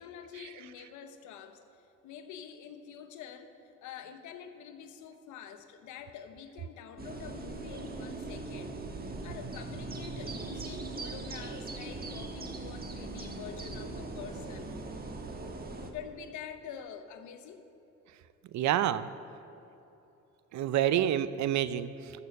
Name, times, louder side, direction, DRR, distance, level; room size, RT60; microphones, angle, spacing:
voice 1, 0.0-3.5 3.8-15.0 15.7-17.6, left 8 dB, 90° left, 8 dB, 0.9 m, -46 dB
sound 1, 7.0-15.9, right 3 dB, 30° right, 1.3 m, -40 dB
voice 2, 18.5-19.1 20.5-22.1, right 11 dB, 75° right, 14 dB, 0.6 m, -28 dB
14.0 x 6.9 x 5.3 m, 2.9 s
cardioid pair, 70°, 29 cm